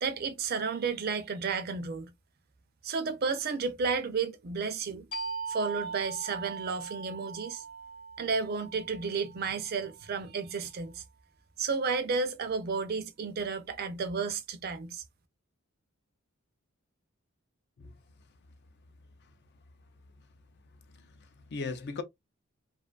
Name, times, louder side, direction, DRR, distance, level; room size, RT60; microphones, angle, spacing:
voice 1, 0.0-2.1 2.8-5.0 5.5-7.6 8.2-11.0 11.6-15.0, right 5 dB, 50° right, 0.4 m, -32 dB
sound 1, 5.1-10.4, right 5 dB, 25° left, 0.7 m, -41 dB
voice 2, 20.9-22.0, left 4 dB, 50° left, 0.5 m, -39 dB
2.5 x 2.3 x 2.3 m
head